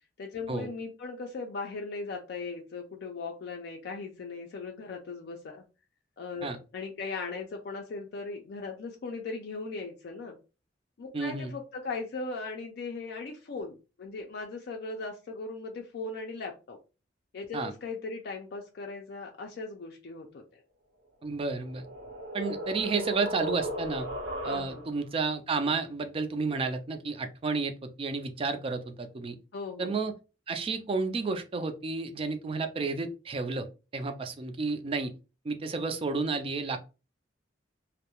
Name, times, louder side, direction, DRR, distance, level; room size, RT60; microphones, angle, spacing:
voice 1, 0.2-5.6 6.2-10.4 11.0-16.8 17.3-20.6 24.5-24.9 29.5-30.0, left 4 dB, 60° left, 2 dB, 0.4 m, -38 dB
voice 2, 11.1-11.5 17.5-17.7 21.2-21.8 22.3-24.1 24.4-29.4 29.8-30.1 30.5-33.7 33.9-35.1 35.4-36.8, right 4 dB, 30° right, 8 dB, 0.3 m, -31 dB
sound 1, 21.3-25.1, equal, 75° right, 0.9 m, -36 dB
2.3 x 2.0 x 2.9 m, 0.30 s
head